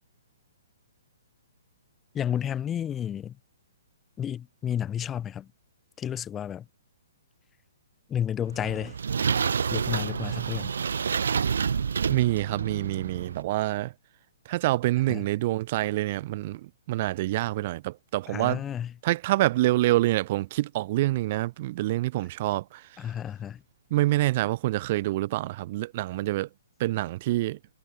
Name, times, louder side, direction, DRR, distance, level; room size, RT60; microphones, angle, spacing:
voice 1, 2.1-3.3 4.2-5.5 6.0-6.6 8.1-9.0 9.7-10.7 15.1-15.2 18.3-18.9 23.0-23.6, left 9 dB, 15° left, 0.7 m, -31 dB
sound 1, 8.5-13.4, right 6 dB, 75° right, 0.7 m, -28 dB
voice 2, 12.1-13.9 14.5-18.6 19.0-22.8 23.9-26.5 26.8-27.6, right 17 dB, 40° right, 0.9 m, -26 dB
hypercardioid pair, 145°, 0 cm